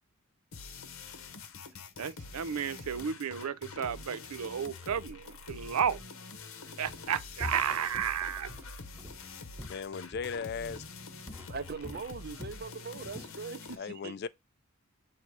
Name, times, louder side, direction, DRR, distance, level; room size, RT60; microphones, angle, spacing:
sound 1, 0.5-13.8, left 4 dB, 70° left, 0.8 m, -46 dB
voice 1, 2.0-6.0 6.8-8.5, right 8 dB, 90° right, 0.5 m, -33 dB
Walk footsteps, 6.9-7.1 7.4-10.4 10.7-11.0 11.3-12.7 13.0-13.4, left 1 dB, 10° right, 0.9 m, -45 dB
voice 2, 9.7-10.8 13.8-14.3, left 5 dB, 50° left, 0.4 m, -37 dB
voice 3, 11.5-14.2, right 4 dB, 45° right, 0.6 m, -41 dB
8.2 x 2.8 x 4.6 m
head